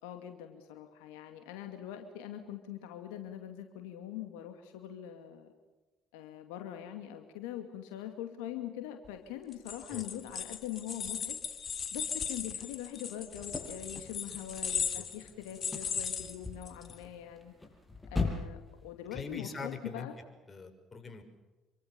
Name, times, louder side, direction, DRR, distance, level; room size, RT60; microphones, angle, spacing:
voice 1, 0.0-5.5 6.1-11.4 11.9-17.5 18.1-20.1, left 11 dB, 80° left, 6 dB, 2.4 m, -43 dB
sound 1, 9.5-17.0, left 7 dB, 45° left, 3.3 m, -37 dB
sound 2, 13.3-19.2, left 3 dB, 15° left, 7.6 m, -40 dB
voice 2, 19.1-20.1 20.5-21.2, left 4 dB, 30° left, 7 dB, 6.2 m, -42 dB
27.5 x 24.0 x 7.0 m, 1.1 s
hypercardioid pair, 60°, 0 cm